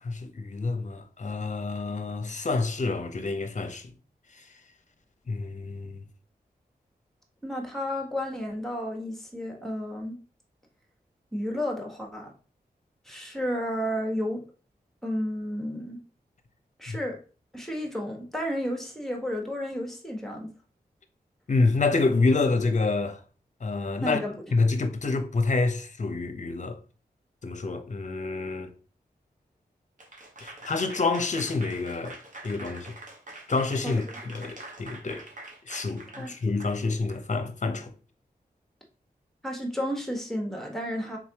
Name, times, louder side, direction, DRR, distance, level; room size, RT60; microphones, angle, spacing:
voice 1, 0.0-3.9 4.3-4.5 5.3-6.0 16.9-17.0 21.5-23.2 23.6-24.2 24.5-26.8 27.4-28.7 30.4-32.2 32.4-33.0 33.5-35.3 35.7-37.9, left 3 dB, 45° left, 0.7 m, -27 dB
voice 2, 7.4-10.2 11.3-12.3 13.1-14.4 15.0-16.0 16.8-17.2 17.5-20.5 24.0-24.3 33.8-34.0 36.2-36.3 39.4-41.2, equal, ahead, 1.3 m, -32 dB
Applause / Crowd, 30.0-37.2, right 2 dB, 50° right, 1.1 m, -45 dB
3.8 x 3.1 x 2.9 m
cardioid pair, 45°, 17 cm